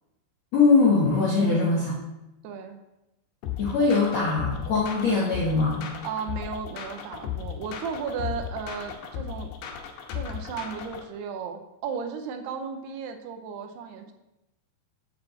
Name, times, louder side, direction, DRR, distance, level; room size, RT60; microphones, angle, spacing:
voice 1, 0.5-1.9 3.6-5.9, left 4 dB, 70° left, -5 dB, 1.7 m, -22 dB
voice 2, 1.4-1.9 2.4-2.8 6.0-9.5 10.1-14.1, right 6 dB, 80° right, 5 dB, 2.8 m, -35 dB
sound 1, 3.4-11.0, left 9 dB, 85° left, 2.9 m, -35 dB
7.1 x 5.3 x 6.9 m, 0.93 s
omnidirectional pair, 4.8 m